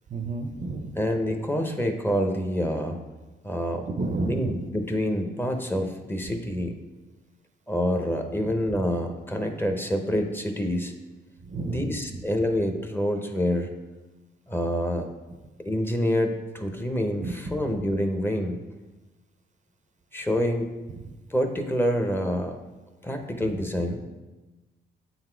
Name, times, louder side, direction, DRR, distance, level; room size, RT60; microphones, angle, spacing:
voice 1, 0.1-1.0 4.0-4.5 11.4-12.2 17.2-17.7 21.0-21.1, right 3 dB, 40° right, 7 dB, 0.6 m, -31 dB
voice 2, 0.9-3.0 3.4-3.9 4.2-6.8 7.7-10.9 11.6-13.7 14.5-15.1 15.6-18.6 20.1-20.7 21.3-22.6 23.0-24.0, equal, 10° left, 5 dB, 0.8 m, -27 dB
7.3 x 4.0 x 4.5 m, 1.2 s
cardioid pair, 90°, 20 cm